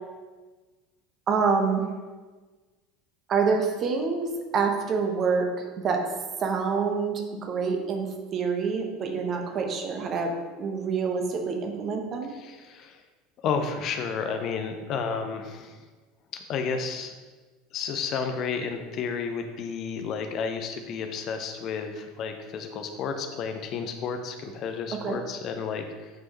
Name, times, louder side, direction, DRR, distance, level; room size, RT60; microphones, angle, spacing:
voice 1, 1.3-1.8 3.3-5.5 5.8-6.0 6.4-12.3 24.9-25.2, right 5 dB, 40° right, 3 dB, 1.3 m, -27 dB
voice 2, 12.3-13.0 13.4-15.8 16.3-17.1 17.7-26.1, left 5 dB, 45° left, 6 dB, 0.7 m, -32 dB
9.1 x 5.5 x 3.1 m, 1.3 s
figure-of-eight pair, 70°, 0 cm